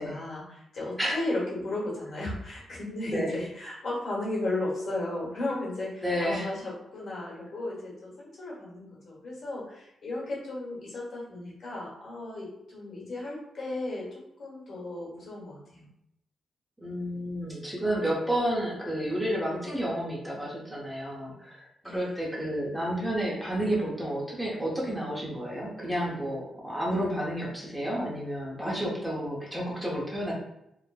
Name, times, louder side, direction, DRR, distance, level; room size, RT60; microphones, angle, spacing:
voice 1, 0.0-15.8 21.8-22.3, left 2 dB, 55° left, -5 dB, 1.2 m, -35 dB
voice 2, 6.0-6.5 16.8-30.3, equal, 5° right, -4 dB, 0.7 m, -31 dB
3.0 x 2.1 x 2.2 m, 0.81 s
cardioid pair, 130°, 0 cm